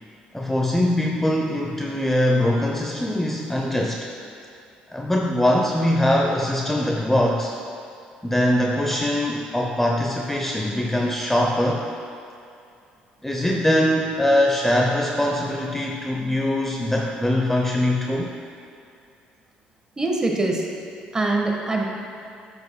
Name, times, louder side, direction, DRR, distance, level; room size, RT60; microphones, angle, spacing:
voice 1, 0.3-4.1 4.9-7.5 8.2-11.9 13.2-18.3, left 1 dB, 10° left, 0 dB, 0.6 m, -22 dB
voice 2, 20.0-20.7 21.1-21.9, right 2 dB, 20° right, 0 dB, 1.3 m, -23 dB
10.0 x 6.8 x 2.2 m, 2.5 s
supercardioid pair, 70°, 3 cm